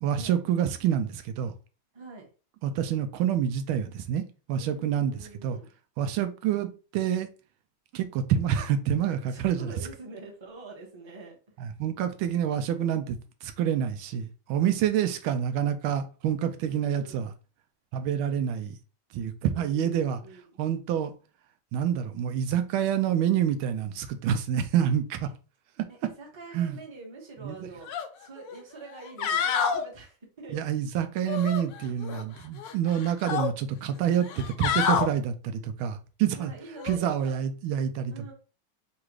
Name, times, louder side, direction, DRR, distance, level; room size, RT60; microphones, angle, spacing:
voice 1, 0.0-1.5 2.6-4.2 4.5-5.6 6.0-7.3 7.9-9.7 11.6-17.3 17.9-18.8 19.1-20.2 20.6-21.1 21.7-25.3 26.5-26.8 27.4-27.7 30.5-36.5 36.8-38.3, right 9 dB, 85° right, 1.4 m, -27 dB
voice 2, 1.9-2.3 4.5-5.7 9.3-11.4 16.6-17.3 19.4-20.6 26.0-27.9 28.2-30.6 36.3-37.5 38.1-38.3, right 3 dB, 20° right, 0.8 m, -45 dB
sound 1, 27.9-28.1 28.5-28.6 29.0-29.8 31.3-32.2 32.6-33.5 34.2-35.1 36.8-37.0, left 7 dB, 70° left, 1.1 m, -28 dB
3.9 x 2.5 x 4.7 m
omnidirectional pair, 2.2 m